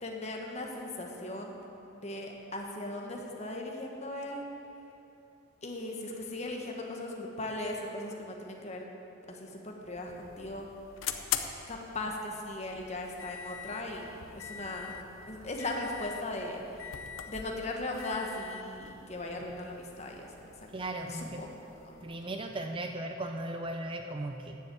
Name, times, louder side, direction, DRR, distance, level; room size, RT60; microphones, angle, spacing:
voice 1, 0.0-1.6 1.9-4.4 5.6-8.9 9.3-10.7 11.7-14.9 15.3-16.9 17.2-20.5 21.1-21.5 21.8-22.1, left 2 dB, 35° left, 1 dB, 1.2 m, -38 dB
sound 1, 9.8-22.3, left 8 dB, 75° left, 0.7 m, -43 dB
voice 2, 20.7-21.4 22.0-24.6, right 1 dB, 25° right, 4 dB, 0.4 m, -37 dB
9.6 x 7.3 x 8.5 m, 2.9 s
head